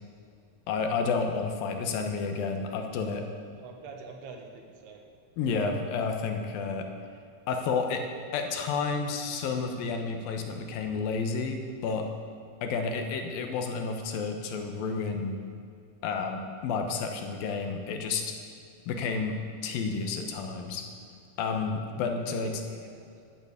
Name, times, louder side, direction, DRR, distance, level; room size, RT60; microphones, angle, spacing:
voice 1, 0.7-3.2 5.4-6.9 7.5-8.0 8.3-12.1 12.6-15.4 16.0-18.3 18.9-20.8 21.4-22.5, left 4 dB, 75° left, 4 dB, 2.7 m, -30 dB
voice 2, 3.6-5.1 22.1-23.3, right 4 dB, 90° right, 3 dB, 3.5 m, -46 dB
12.5 x 8.9 x 8.5 m, 2.5 s
omnidirectional pair, 4.4 m